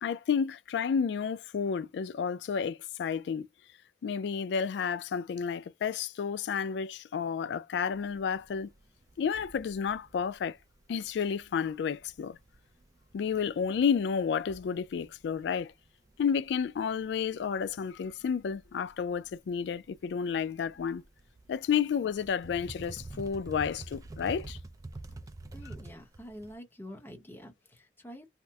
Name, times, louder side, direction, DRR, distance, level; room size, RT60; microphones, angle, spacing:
voice 1, 0.0-3.5 4.0-8.7 9.2-10.6 10.9-12.4 13.1-15.7 16.2-21.0 21.5-24.6, left 6 dB, 70° left, 0.3 m, -31 dB
sound 1, 7.9-26.5, right 2 dB, 20° right, 0.3 m, -48 dB
voice 2, 25.5-28.3, equal, 10° left, 0.7 m, -47 dB
2.9 x 2.0 x 3.3 m
head